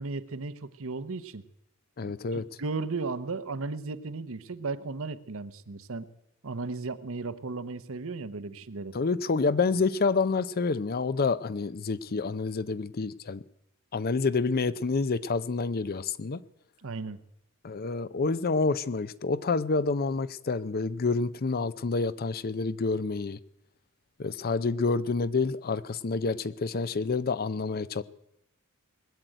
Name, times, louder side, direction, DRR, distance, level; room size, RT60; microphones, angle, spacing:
voice 1, 0.0-1.5 2.3-6.1 6.4-9.0 16.8-17.2, right 3 dB, 65° right, 0.9 m, -35 dB
voice 2, 2.0-2.4 8.9-13.4 13.9-16.4 17.6-23.4 24.2-28.0, left 4 dB, 45° left, 0.6 m, -28 dB
20.5 x 7.7 x 9.1 m
head